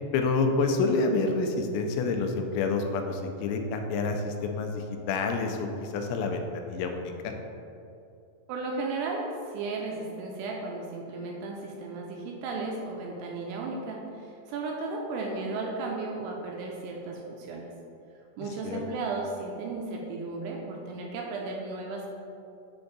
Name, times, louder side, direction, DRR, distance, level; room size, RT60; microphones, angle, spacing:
voice 1, 0.1-7.1 18.6-18.8, left 3 dB, 90° left, 4 dB, 2.9 m, -28 dB
voice 2, 8.5-17.7 18.4-22.1, right 3 dB, 80° right, 0 dB, 2.5 m, -35 dB
7.6 x 3.5 x 3.9 m, 2.7 s
omnidirectional pair, 5.1 m